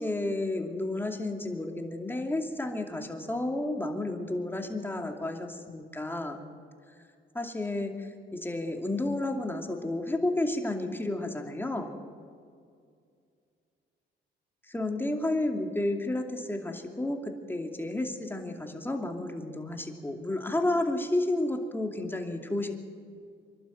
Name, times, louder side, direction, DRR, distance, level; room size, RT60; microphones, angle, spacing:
voice 1, 0.0-6.4 7.3-11.9 14.7-22.7, left 2 dB, 10° left, 3 dB, 2.6 m, -31 dB
26.0 x 12.0 x 9.1 m, 2.3 s
cardioid pair, 90°, 20 cm